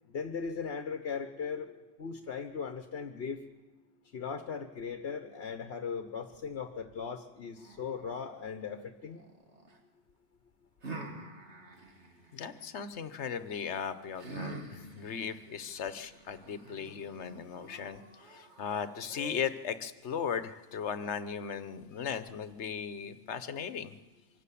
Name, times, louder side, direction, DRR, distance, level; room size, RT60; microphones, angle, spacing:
voice 1, 0.1-1.7 2.0-3.4 4.1-9.2, left 6 dB, 70° left, 7 dB, 1.3 m, -38 dB
sound 1, 7.6-9.8 10.8-12.9 14.2-19.8, right 3 dB, 85° right, 2.3 m, -47 dB
voice 2, 12.3-23.9, left 7 dB, 85° left, 12 dB, 1.2 m, -37 dB
24.0 x 13.0 x 8.4 m, 1.2 s
omnidirectional pair, 1.1 m